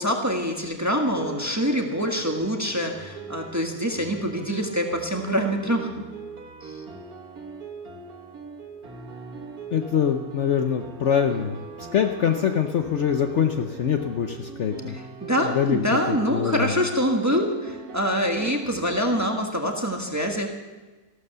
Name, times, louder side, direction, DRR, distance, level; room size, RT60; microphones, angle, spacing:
voice 1, 0.0-5.9 6.6-6.7 15.2-20.5, equal, 10° right, 2 dB, 1.4 m, -25 dB
sound 1, 1.1-19.3, right 5 dB, 75° right, 2.0 m, -41 dB
voice 2, 9.7-15.0 15.4-16.8, left 8 dB, 55° left, 5 dB, 1.0 m, -24 dB
15.0 x 12.5 x 6.8 m, 1.2 s
omnidirectional pair, 1.6 m